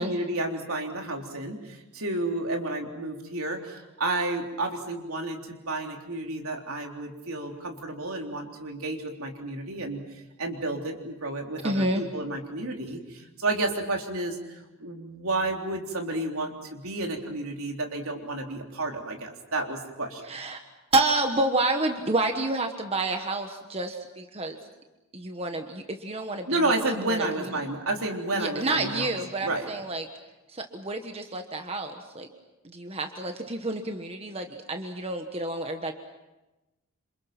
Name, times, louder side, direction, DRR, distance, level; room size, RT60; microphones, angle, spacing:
voice 1, 0.0-10.0 10.4-14.4 14.8-20.2 26.5-29.1 29.4-29.7, right 2 dB, 70° right, 2 dB, 3.7 m, -31 dB
voice 2, 11.6-12.0 20.2-20.6 20.9-24.6 25.1-26.6 27.1-27.5 28.3-30.1 30.5-32.3 32.6-35.9, right 2 dB, 25° right, 5 dB, 1.4 m, -29 dB
28.0 x 27.5 x 6.0 m, 1.0 s
head